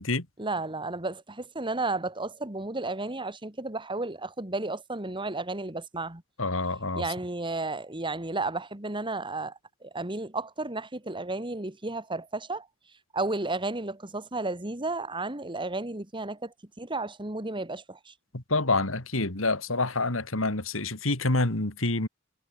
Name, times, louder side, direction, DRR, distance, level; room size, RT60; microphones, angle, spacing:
voice 1, 0.4-6.2 6.9-12.7 13.1-18.1, right 2 dB, 25° right, 2.3 m, -33 dB
voice 2, 6.4-7.0 18.3-22.1, left 2 dB, 90° left, 3.1 m, -27 dB
head